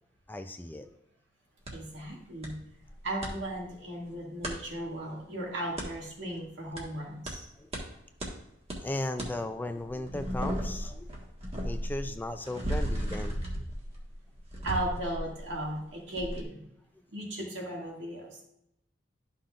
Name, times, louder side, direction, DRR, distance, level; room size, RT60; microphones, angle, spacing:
voice 1, 0.3-0.9 7.6-7.7 8.8-11.2 11.6-13.6, left 1 dB, 10° left, 7 dB, 0.4 m, -36 dB
sound 1, 1.7-1.8 2.4-2.5 2.8-3.3 4.4-4.6 5.8-5.9 6.8-6.9 7.3-7.4 7.7-7.8 8.2-8.3 8.7-8.8 9.2-9.3 9.8-15.8 16.2-16.4, equal, 35° right, 1.5 m, -35 dB
voice 2, 1.7-2.6 3.0-7.5 14.6-16.6 17.1-18.4, right 1 dB, 75° right, -2 dB, 2.2 m, -36 dB
12.0 x 5.7 x 2.5 m, 0.80 s
head